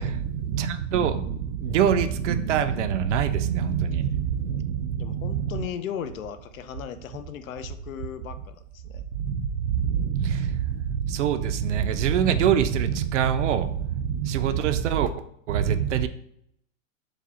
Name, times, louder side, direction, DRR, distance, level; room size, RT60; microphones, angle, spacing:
voice 1, 0.0-5.6 9.1-15.1 15.5-16.1, right 8 dB, 60° right, 11 dB, 0.5 m, -25 dB
voice 2, 4.9-9.1, left 8 dB, 75° left, 11 dB, 0.6 m, -37 dB
4.8 x 2.2 x 4.1 m, 0.72 s
hypercardioid pair, 155°, 42 cm